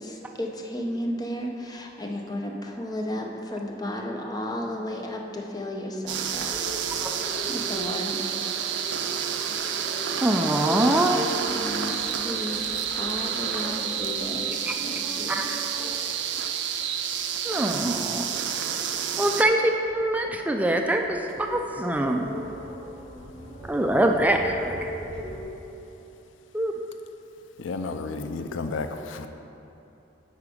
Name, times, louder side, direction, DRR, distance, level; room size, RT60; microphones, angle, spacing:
voice 1, 0.0-6.5 7.5-8.5 11.5-12.7 12.9-15.4, left 1 dB, 20° left, 1 dB, 0.7 m, -33 dB
sound 1, 6.1-25.4, equal, 35° left, 1.8 m, -40 dB
sound 2, 6.1-19.4, right 8 dB, 65° right, 0.5 m, -29 dB
voice 2, 10.2-11.2 15.3-15.4 17.4-18.3 19.2-22.3 23.7-24.9 26.5-26.7, right 1 dB, 10° right, 3 dB, 0.3 m, -24 dB
voice 3, 27.6-29.3, left 3 dB, 90° left, 8 dB, 0.4 m, -32 dB
8.4 x 4.8 x 5.0 m, 3.0 s
head